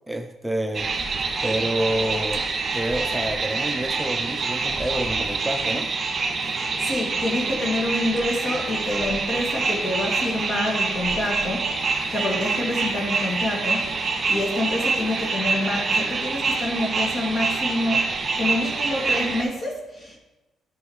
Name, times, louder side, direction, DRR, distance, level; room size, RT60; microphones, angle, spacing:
voice 1, 0.1-1.2 1.4-2.5 2.7-5.9, right 1 dB, 5° right, 5 dB, 0.5 m, -28 dB
sound 1, 0.7-19.4, right 4 dB, 40° right, 1.8 m, -26 dB
voice 2, 6.8-20.2, left 1 dB, 45° left, -2 dB, 2.5 m, -27 dB
11.5 x 5.5 x 3.2 m, 1.0 s
cardioid pair, 90°, 0 cm